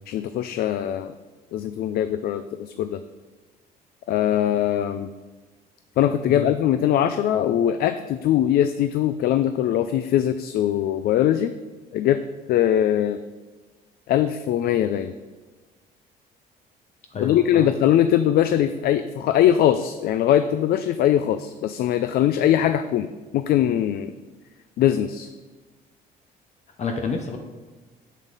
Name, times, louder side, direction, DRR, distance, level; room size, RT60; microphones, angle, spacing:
voice 1, 0.1-1.1 1.5-3.0 4.1-5.1 6.0-11.5 11.9-12.2 12.5-13.2 14.1-15.1 17.2-24.1 24.8-25.3, left 11 dB, 65° left, 11 dB, 0.4 m, -21 dB
voice 2, 17.1-17.7 26.8-27.4, left 5 dB, 45° left, 4 dB, 0.8 m, -29 dB
7.4 x 7.3 x 4.0 m, 1.3 s
cardioid pair, 110°, 17 cm